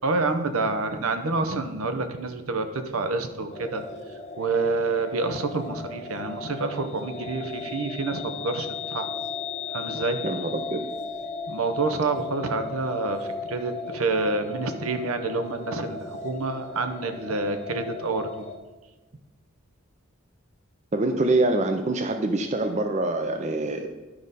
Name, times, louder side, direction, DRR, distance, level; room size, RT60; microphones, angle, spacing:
voice 1, 0.0-3.8 4.4-9.1 9.7-10.2 11.5-18.5, right 3 dB, 80° right, 8 dB, 0.8 m, -28 dB
sound 1, 3.5-18.6, left 4 dB, 30° left, 0.8 m, -36 dB
voice 2, 10.2-10.8 20.9-23.9, right 2 dB, 30° right, 6 dB, 0.5 m, -25 dB
11.5 x 5.1 x 4.1 m, 1.2 s
head